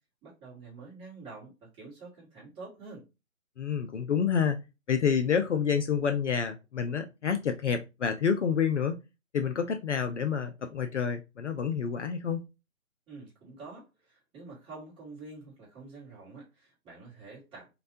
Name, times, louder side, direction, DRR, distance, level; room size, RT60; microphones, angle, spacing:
voice 1, 0.2-3.0 13.1-17.7, right 3 dB, 10° right, -7 dB, 2.0 m, -47 dB
voice 2, 3.6-4.6 4.9-9.0 9.3-12.4, left 7 dB, 55° left, 8 dB, 0.7 m, -28 dB
4.1 x 3.2 x 2.6 m, 0.25 s
figure-of-eight pair, 150°, 43 cm